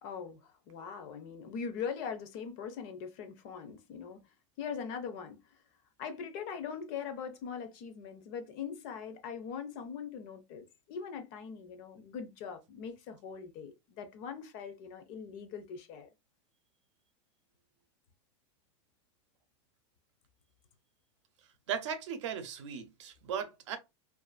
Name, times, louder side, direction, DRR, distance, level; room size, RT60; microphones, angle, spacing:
voice 1, 0.0-4.2 4.6-5.6 6.0-16.1, left 6 dB, 35° left, 0.5 m, -41 dB
voice 2, 21.7-23.8, right 7 dB, 70° right, 0.6 m, -37 dB
2.5 x 2.4 x 2.3 m
supercardioid pair, 165°, 16 cm